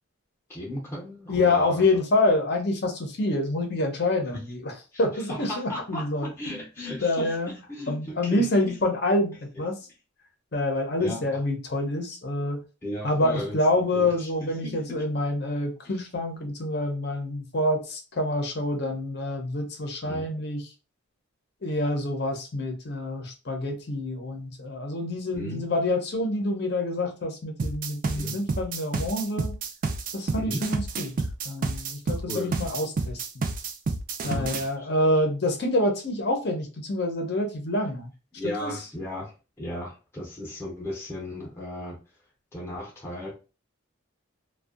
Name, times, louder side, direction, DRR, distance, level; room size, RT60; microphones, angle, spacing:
voice 1, 0.5-1.9 4.3-4.4 4.9-5.0 5.3-8.7 11.0-11.2 12.8-15.0 15.8-15.9 20.0-20.3 25.3-25.6 28.2-28.4 30.4-30.6 32.3-32.5 34.2-34.9 38.4-39.3 39.6-42.0 42.5-43.3, left 1 dB, 10° left, -3 dB, 0.6 m, -36 dB
voice 2, 1.3-4.7 5.0-6.6 7.0-7.5 7.9-9.8 10.5-12.6 13.0-20.7 21.6-29.5 30.1-31.1 31.4-33.5 34.2-38.1 38.4-38.7, left 2 dB, 50° left, 4 dB, 0.6 m, -27 dB
sound 1, 27.6-34.7, right 4 dB, 40° right, 0.3 m, -29 dB
2.6 x 2.2 x 2.3 m, 0.31 s
head